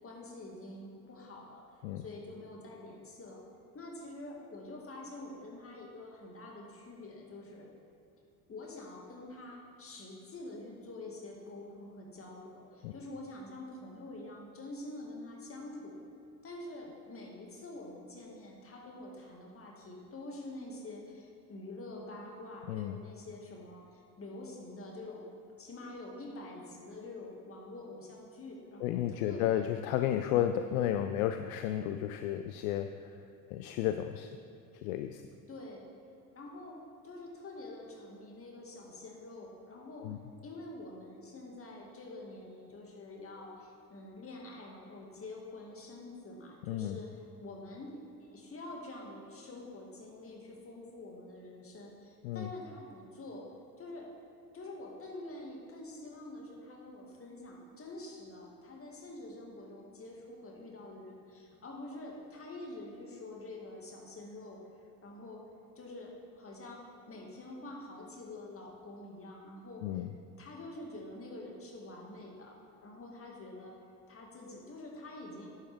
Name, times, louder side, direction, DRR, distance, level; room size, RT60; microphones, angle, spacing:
voice 1, 0.0-3.4 3.7-7.7 8.5-16.0 16.4-25.2 25.6-29.7 35.5-35.9 36.4-36.8 37.0-40.2 40.4-47.9 48.2-53.5 53.8-54.1 54.5-64.6 65.0-65.4 65.8-66.8 67.1-70.1 70.4-73.7 74.1-75.5, left 2 dB, 30° left, -1 dB, 2.2 m, -46 dB
voice 2, 22.7-23.0 28.8-32.9 33.5-34.3 34.7-35.2 40.0-40.2 46.7-47.0 52.2-52.5 69.8-70.1, left 11 dB, 60° left, 8 dB, 0.5 m, -32 dB
11.0 x 8.1 x 3.6 m, 2.5 s
figure-of-eight pair, 65°, 48 cm